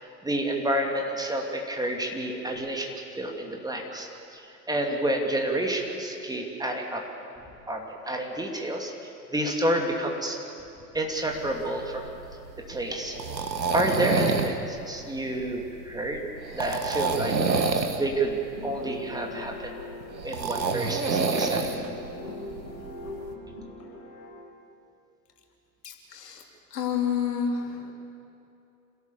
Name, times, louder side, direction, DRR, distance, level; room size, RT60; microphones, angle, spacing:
voice 1, 0.2-7.0 7.7-8.9 9.3-10.4 10.9-12.1 12.7-13.2 13.7-16.3 16.5-17.3 18.0-19.8 20.2-21.7 22.6-22.7, right 1 dB, 10° right, 1 dB, 2.5 m, -29 dB
sound 1, 11.2-23.3, right 4 dB, 80° right, 1.6 m, -29 dB
sound 2, 18.5-24.3, left 2 dB, 30° left, 6.9 m, -41 dB
voice 2, 25.8-26.4 26.7-27.9, left 7 dB, 70° left, 2 dB, 3.2 m, -29 dB
27.0 x 17.0 x 7.1 m, 2.7 s
figure-of-eight pair, 85°, 50 cm